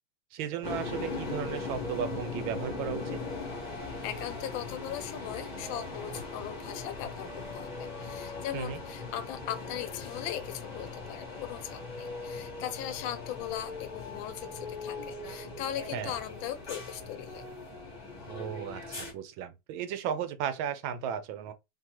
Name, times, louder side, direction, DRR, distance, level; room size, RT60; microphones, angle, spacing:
voice 1, 0.3-3.2 8.5-8.8 15.9-16.1 18.3-21.5, right 8 dB, 80° right, 1.4 m, -35 dB
sound 1, 0.6-19.1, left 3 dB, 30° left, 0.8 m, -39 dB
voice 2, 4.0-17.5, left 10 dB, 80° left, 1.4 m, -39 dB
3.7 x 2.8 x 2.9 m
omnidirectional pair, 2.2 m